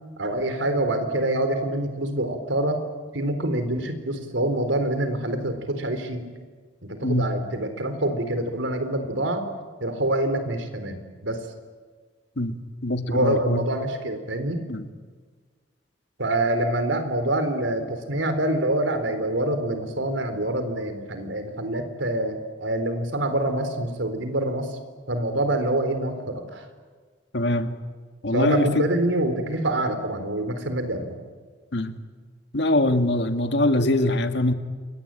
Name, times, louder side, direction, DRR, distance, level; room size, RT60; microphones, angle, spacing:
voice 1, 0.2-2.8 3.1-6.2 6.8-9.4 9.8-11.4 13.1-14.7 16.2-24.7 25.1-26.7 28.3-31.2, right 1 dB, 80° right, 8 dB, 4.1 m, -26 dB
voice 2, 12.8-13.7 14.7-14.9 27.3-27.8 28.2-28.9 31.7-32.0 32.5-34.5, left 1 dB, 60° left, 7 dB, 2.0 m, -23 dB
28.5 x 23.0 x 9.0 m, 1.5 s
head